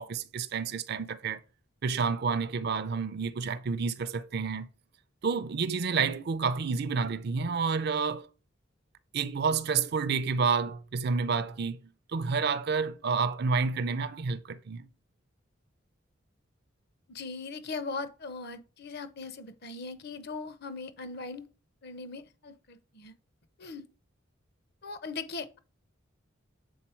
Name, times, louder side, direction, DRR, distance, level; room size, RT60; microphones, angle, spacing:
voice 1, 0.0-1.4 1.8-4.7 5.2-8.3 9.1-14.9, right 5 dB, 50° right, 0.4 m, -29 dB
voice 2, 17.1-21.5 21.8-23.1 23.6-23.9 24.8-25.6, left 4 dB, 50° left, 0.7 m, -39 dB
7.1 x 4.1 x 4.4 m
head